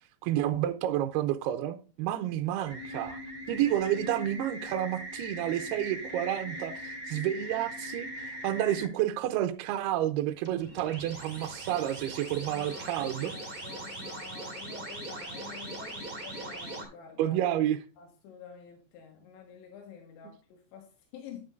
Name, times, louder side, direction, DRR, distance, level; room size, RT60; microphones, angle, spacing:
voice 1, 0.2-3.2 3.5-13.3 17.2-17.8, right 12 dB, 85° right, 2.3 m, -30 dB
sound 1, 2.6-8.9 10.4-16.8, right 1 dB, 25° right, 1.2 m, -40 dB
voice 2, 12.5-17.4 18.0-21.4, left 7 dB, 90° left, 3.6 m, -49 dB
9.5 x 9.4 x 2.6 m
omnidirectional pair, 5.3 m